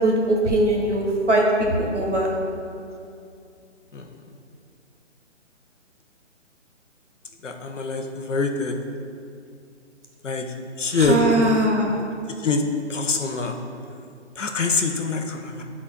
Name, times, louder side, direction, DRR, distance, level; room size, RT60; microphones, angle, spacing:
voice 1, 0.0-1.4 1.8-2.3 10.9-11.9, right 1 dB, 75° right, 0 dB, 1.3 m, -21 dB
voice 2, 7.4-8.8 10.2-10.5 10.8-11.4 12.4-12.6 12.9-13.6 14.4-15.6, left 3 dB, 80° left, 4 dB, 0.8 m, -24 dB
10.0 x 4.2 x 2.2 m, 2.4 s
figure-of-eight pair, 140°, 36 cm